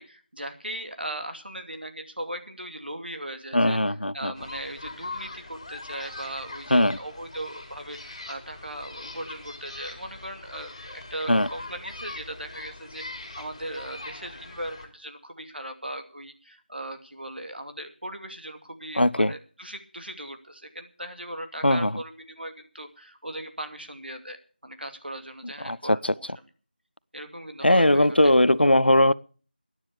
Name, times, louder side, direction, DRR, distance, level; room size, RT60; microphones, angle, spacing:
voice 1, 0.0-13.0 13.4-26.3 27.1-28.3, right 1 dB, 75° right, 2.5 m, -38 dB
voice 2, 3.5-4.3 6.7-7.0 11.3-11.5 19.0-19.3 21.6-22.0 25.6-26.1 27.6-29.1, left 1 dB, 90° left, 0.7 m, -20 dB
sound 1, 4.3-14.9, left 2 dB, 30° left, 3.3 m, -41 dB
14.5 x 9.8 x 6.9 m
figure-of-eight pair, 170°, 5 cm